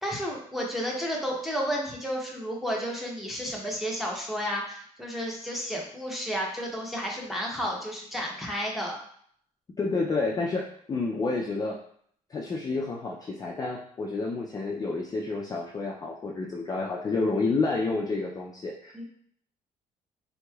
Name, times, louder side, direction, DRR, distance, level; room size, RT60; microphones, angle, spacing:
voice 1, 0.0-9.0 18.9-19.0, equal, ahead, -3 dB, 0.7 m, -32 dB
voice 2, 9.8-11.8 12.3-19.0, left 3 dB, 25° left, -2 dB, 0.4 m, -29 dB
3.5 x 3.0 x 2.3 m, 0.63 s
cardioid pair, 125°, 15 cm